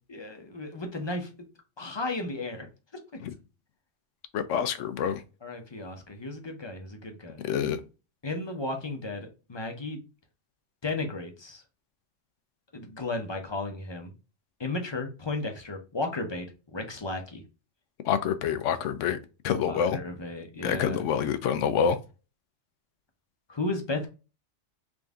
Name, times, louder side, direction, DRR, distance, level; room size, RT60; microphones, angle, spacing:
voice 1, 0.1-1.3 1.8-2.7 5.4-7.4 8.2-10.0 10.8-11.6 12.7-14.1 14.6-17.4 19.6-21.0 23.5-24.1, left 2 dB, 30° left, 0.6 m, -34 dB
voice 2, 4.3-5.2 7.4-7.8 18.0-19.2 19.4-20.0 20.6-22.0, left 8 dB, 85° left, 0.9 m, -27 dB
3.7 x 2.6 x 3.4 m
omnidirectional pair, 1.2 m